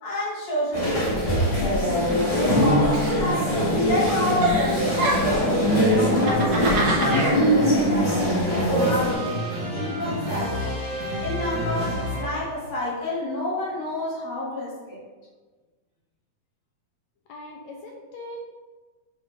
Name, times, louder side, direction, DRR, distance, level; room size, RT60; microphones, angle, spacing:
voice 1, 0.0-1.4 2.3-3.5 3.8-6.5 6.8-10.8 11.2-15.0, left 1 dB, 55° left, -7 dB, 3.2 m, -29 dB
sound 1, 0.7-9.1, equal, 25° left, 1.9 m, -22 dB
Giggle, 2.9-3.8 4.0-5.5 6.1-7.4, right 2 dB, 85° right, 3.1 m, -27 dB
sound 2, 4.7-12.6, equal, 50° right, 1.2 m, -31 dB
voice 2, 17.3-18.4, left 1 dB, 75° left, 0 dB, 1.7 m, -40 dB
9.2 x 3.6 x 3.6 m, 1.3 s
omnidirectional pair, 3.6 m